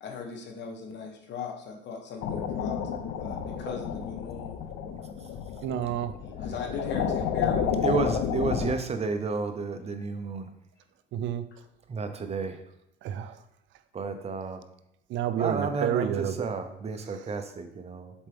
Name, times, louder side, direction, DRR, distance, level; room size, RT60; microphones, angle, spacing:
voice 1, 0.0-2.8 3.2-4.6 6.4-8.7, left 5 dB, 65° left, 3 dB, 1.3 m, -39 dB
sound 1, 2.2-8.7, left 7 dB, 85° left, 0.7 m, -31 dB
voice 2, 5.6-6.2 11.1-11.5 13.0-13.4 15.1-16.5 17.1-17.3, right 10 dB, 70° right, 12 dB, 0.5 m, -30 dB
voice 3, 7.8-10.5 11.9-12.6 13.9-14.6 15.4-18.1, right 4 dB, 30° right, 7 dB, 0.8 m, -31 dB
7.2 x 4.5 x 3.5 m, 0.84 s
cardioid pair, 105°, 20 cm